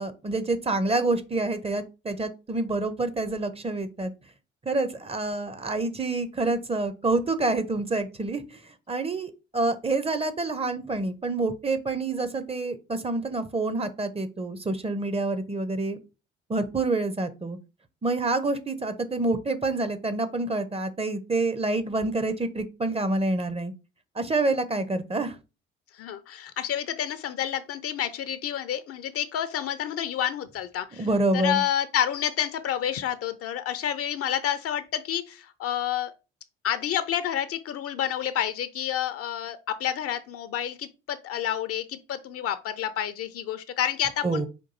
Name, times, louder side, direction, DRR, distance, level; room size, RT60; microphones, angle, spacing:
voice 1, 0.0-4.1 4.6-16.0 16.5-17.6 18.0-23.7 24.1-25.4 31.0-31.6 44.2-44.5, right 2 dB, 20° right, 0.7 m, -27 dB
voice 2, 25.9-31.1 31.3-36.1 36.6-44.4, left 10 dB, 50° left, 0.6 m, -29 dB
5.3 x 2.6 x 3.9 m
figure-of-eight pair, 50°, 31 cm